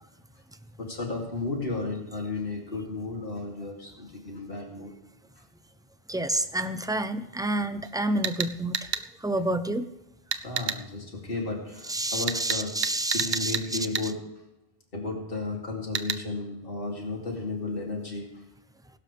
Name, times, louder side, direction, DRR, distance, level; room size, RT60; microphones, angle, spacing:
voice 1, 0.8-4.9 10.4-12.7 13.1-14.2 14.9-18.3, left 3 dB, 60° left, 0 dB, 3.1 m, -33 dB
voice 2, 6.1-8.9 9.2-9.9 11.8-14.1, right 1 dB, 5° right, 11 dB, 0.5 m, -29 dB
sound 1, 7.8-7.9 8.2-9.0 10.3-10.8 12.3-13.7 13.9-14.1 15.9-16.2, right 7 dB, 55° right, 0.8 m, -29 dB
22.5 x 12.0 x 3.5 m, 0.91 s
omnidirectional pair, 1.0 m